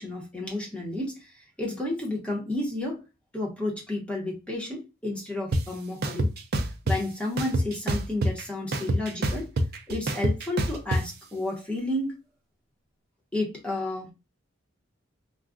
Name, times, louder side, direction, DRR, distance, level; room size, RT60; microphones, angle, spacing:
voice 1, 0.0-3.0 3.3-6.3 6.8-9.5 9.9-12.1 13.3-14.1, left 2 dB, 5° left, 0.9 m, -31 dB
sound 1, 5.5-5.6 6.0-7.0 7.4-8.4 8.7-11.0, right 1 dB, 55° right, 0.5 m, -25 dB
2.4 x 2.3 x 3.6 m
head